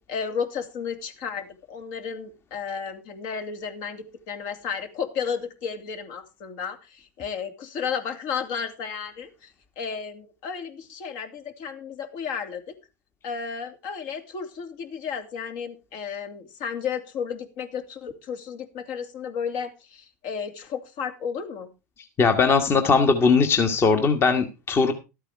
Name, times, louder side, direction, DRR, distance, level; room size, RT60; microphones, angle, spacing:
voice 1, 0.0-9.5 9.8-12.6 13.2-21.7, left 6 dB, 55° left, 7 dB, 2.6 m, -33 dB
voice 2, 22.2-24.9, left 4 dB, 30° left, 6 dB, 1.6 m, -19 dB
13.0 x 8.8 x 4.6 m, 0.28 s
supercardioid pair, 120°, 9 cm